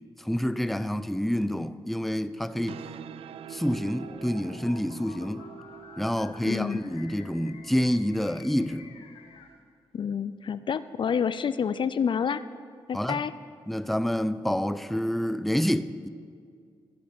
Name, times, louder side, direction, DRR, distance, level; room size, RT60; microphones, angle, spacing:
voice 1, 0.2-2.8 3.5-5.5 6.0-8.9 12.9-13.2 13.7-16.1, equal, ahead, 0.5 m, -28 dB
sound 1, 2.4-9.6, right 9 dB, 75° right, 0.4 m, -47 dB
sound 2, 4.0-9.5, left 6 dB, 85° left, 0.9 m, -51 dB
voice 2, 6.4-6.8 9.9-12.4 12.9-13.3, left 7 dB, 55° left, 0.4 m, -28 dB
14.5 x 7.9 x 5.3 m
supercardioid pair, 50°, 10 cm